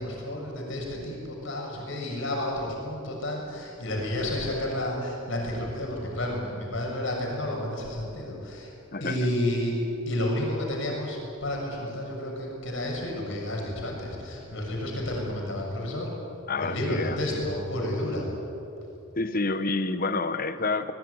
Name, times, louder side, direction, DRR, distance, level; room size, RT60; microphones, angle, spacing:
voice 1, 0.0-8.7 9.0-9.8 10.0-16.1 16.6-18.3, left 1 dB, 65° left, 0 dB, 7.0 m, -31 dB
voice 2, 8.9-9.3 16.5-17.5 19.2-20.9, left 3 dB, 45° left, 11 dB, 1.1 m, -29 dB
21.5 x 20.5 x 9.8 m, 2.9 s
head